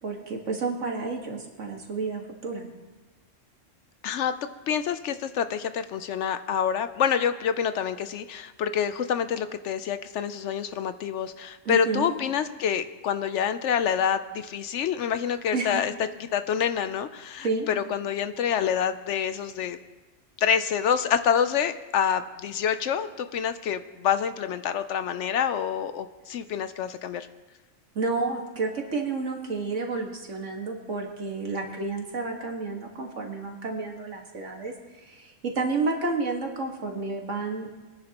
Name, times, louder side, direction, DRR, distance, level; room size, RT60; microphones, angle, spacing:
voice 1, 0.0-2.7 11.7-12.2 15.5-15.7 17.4-17.7 28.0-37.7, right 3 dB, 65° right, 1 dB, 2.0 m, -30 dB
voice 2, 4.7-15.9 16.3-19.8 20.4-27.3, left 8 dB, 70° left, 11 dB, 0.8 m, -27 dB
22.0 x 10.5 x 2.9 m, 1.2 s
omnidirectional pair, 1.4 m